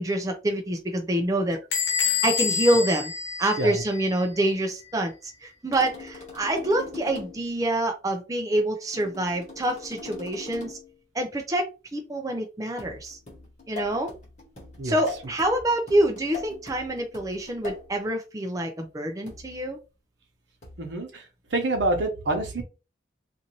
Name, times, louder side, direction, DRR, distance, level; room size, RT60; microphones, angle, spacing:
voice 1, 0.0-1.6 2.2-3.1 3.4-10.8 11.1-11.7 11.9-13.2 13.7-14.1 14.8-19.8, right 1 dB, 20° right, 3 dB, 0.5 m, -26 dB
Bell / Door, 1.7-4.2, left 6 dB, 85° left, 0.9 m, -27 dB
sound 1, 5.7-7.5 8.9-10.9 12.8-17.9 19.3-19.6 20.6-20.9, left 4 dB, 45° left, 1.2 m, -42 dB
voice 2, 20.8-21.2 21.5-22.6, right 2 dB, 80° right, 4 dB, 0.9 m, -27 dB
2.6 x 2.6 x 3.0 m, 0.29 s
head